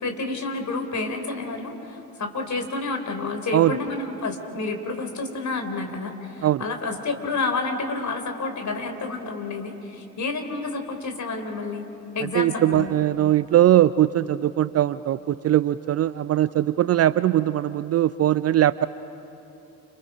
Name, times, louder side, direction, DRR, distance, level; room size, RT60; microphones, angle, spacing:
voice 1, 0.0-11.9 12.1-12.9, left 3 dB, 40° left, 5 dB, 3.9 m, -29 dB
voice 2, 12.4-18.9, right 12 dB, 35° right, 17 dB, 0.5 m, -20 dB
29.5 x 28.0 x 5.1 m, 2.9 s
figure-of-eight pair, 50°, 43 cm